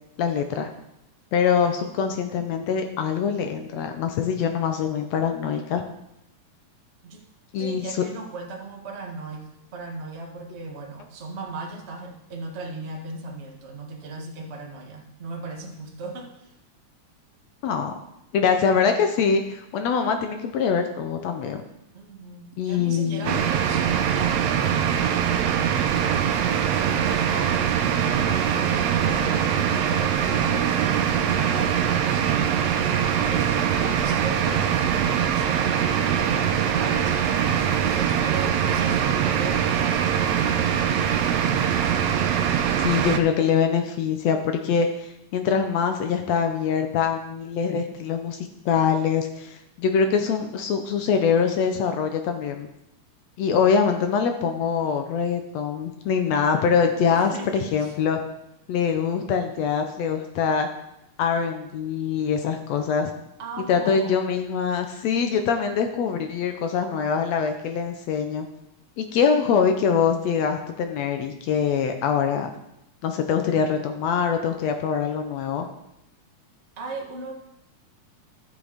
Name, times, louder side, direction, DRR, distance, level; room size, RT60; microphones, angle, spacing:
voice 1, 0.2-0.7 1.3-5.8 7.5-8.0 17.6-17.9 18.3-21.6 22.6-23.4 42.8-52.7 53.4-58.2 58.7-60.7 61.2-63.1 63.7-68.5 69.0-72.5 73.0-75.7, left 6 dB, 75° left, 6 dB, 1.8 m, -24 dB
voice 2, 7.6-16.5 21.9-25.5 26.0-37.2 37.9-41.1 54.6-54.7 57.1-57.9 63.4-64.2 76.8-77.3, right 3 dB, 35° right, 0 dB, 1.2 m, -37 dB
sound 1, 23.3-43.2, right 8 dB, 75° right, 1.8 m, -23 dB
13.0 x 6.3 x 5.1 m, 0.85 s
omnidirectional pair, 3.3 m